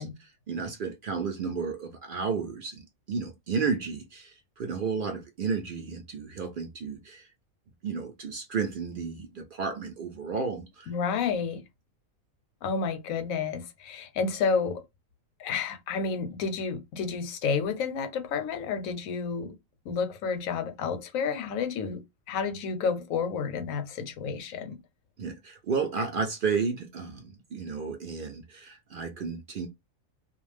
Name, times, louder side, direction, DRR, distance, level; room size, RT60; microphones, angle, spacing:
voice 1, 0.0-2.8 3.1-7.3 7.8-10.9 25.2-29.7, right 5 dB, 70° right, 0.5 m, -32 dB
voice 2, 10.9-11.6 12.6-14.8 15.4-19.5 19.9-22.0 22.3-24.8, left 5 dB, 85° left, 1.0 m, -30 dB
2.3 x 2.2 x 3.1 m
omnidirectional pair, 1.4 m